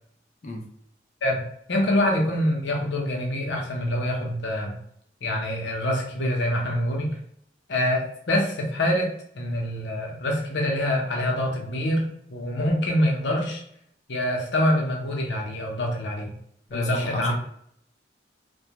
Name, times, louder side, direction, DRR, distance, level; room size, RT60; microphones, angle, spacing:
voice 1, 1.2-4.8 5.2-7.2 7.7-13.6 14.1-16.3 16.7-17.3, left 1 dB, 75° left, 0 dB, 0.6 m, -25 dB
voice 2, 16.7-17.3, left 2 dB, 40° left, 2 dB, 0.3 m, -33 dB
2.2 x 2.1 x 2.8 m, 0.69 s
head